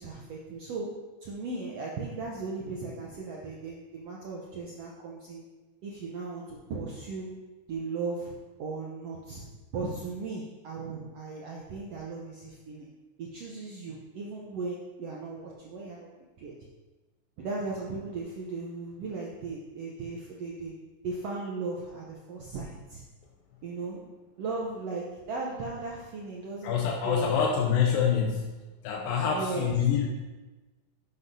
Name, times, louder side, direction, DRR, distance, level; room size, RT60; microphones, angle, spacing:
voice 1, 0.0-5.4 5.8-7.3 7.7-8.3 8.6-9.5 9.7-12.9 13.2-16.1 16.4-16.6 17.4-20.8 21.0-23.0 23.6-24.0 24.4-27.6 29.3-29.8, right 3 dB, 80° right, -2 dB, 1.4 m, -37 dB
voice 2, 26.6-28.4 28.8-30.1, left 7 dB, 85° left, 0 dB, 2.5 m, -26 dB
11.0 x 7.9 x 2.7 m, 1.2 s
omnidirectional pair, 4.0 m